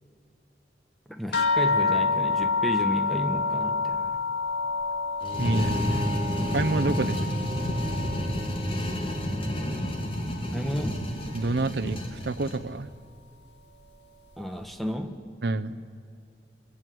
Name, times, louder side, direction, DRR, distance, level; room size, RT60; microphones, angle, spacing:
voice 1, 1.1-4.1 7.0-7.1 10.5-11.0 14.4-15.2, equal, ahead, 6 dB, 1.4 m, -32 dB
sound 1, 1.3-10.2 10.5-11.3 12.1-12.2 12.6-12.8, left 4 dB, 80° left, 2.1 m, -29 dB
sound 2, 5.2-12.6, equal, 30° left, 2.6 m, -30 dB
Bowed string instrument, 5.2-10.4, equal, 20° right, 1.1 m, -38 dB
voice 2, 5.4-6.1 6.5-7.3 11.3-12.9 15.4-15.7, right 2 dB, 65° right, 9 dB, 0.8 m, -28 dB
25.0 x 22.5 x 7.8 m, 2.4 s
head